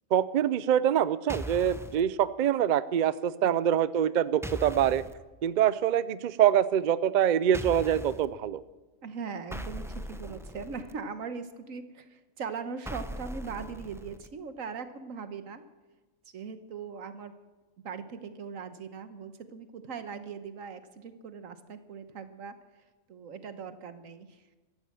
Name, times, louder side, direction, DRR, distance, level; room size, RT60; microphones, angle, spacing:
voice 1, 0.1-5.0 5.4-8.6, right 10 dB, 55° right, 16 dB, 0.5 m, -25 dB
sound 1, 1.3-2.0 4.4-5.1 7.5-8.3 9.5-10.9 12.9-14.3, equal, 5° right, 0.5 m, -39 dB
voice 2, 3.4-3.8 9.0-15.6 16.3-17.3 17.8-22.5 23.1-24.6, right 5 dB, 90° right, 10 dB, 1.5 m, -40 dB
14.5 x 11.5 x 7.5 m, 1.2 s
omnidirectional pair, 1.3 m